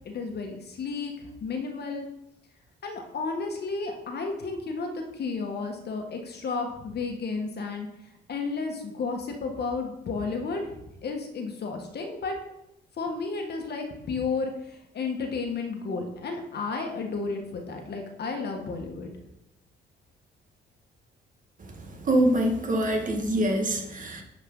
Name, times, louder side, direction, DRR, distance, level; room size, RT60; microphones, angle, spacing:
voice 1, 0.0-2.1 2.8-7.9 8.3-12.4 13.0-19.1, left 4 dB, 55° left, 3 dB, 1.4 m, -32 dB
voice 2, 21.6-24.2, right 1 dB, 40° right, 3 dB, 1.6 m, -25 dB
10.5 x 4.8 x 3.8 m, 0.83 s
cardioid pair, 90°, 20 cm